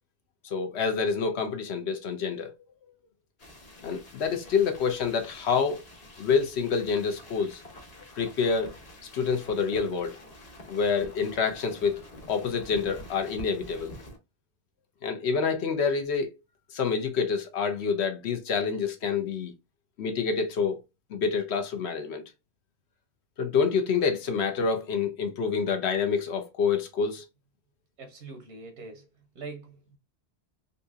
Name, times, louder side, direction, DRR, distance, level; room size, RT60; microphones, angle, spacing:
voice 1, 0.4-2.5 3.8-5.8 6.2-7.6 8.1-8.7 9.1-10.1 10.7-12.0 12.3-13.9 15.0-16.3 16.7-19.5 20.0-20.8 21.1-22.2 23.4-27.2, left 5 dB, 75° left, 1.0 m, -27 dB
sound 1, 3.4-14.2, equal, 40° left, 1.0 m, -47 dB
voice 2, 28.0-29.1 29.3-30.0, right 3 dB, 85° right, 1.0 m, -43 dB
4.0 x 2.7 x 2.3 m
omnidirectional pair, 1.1 m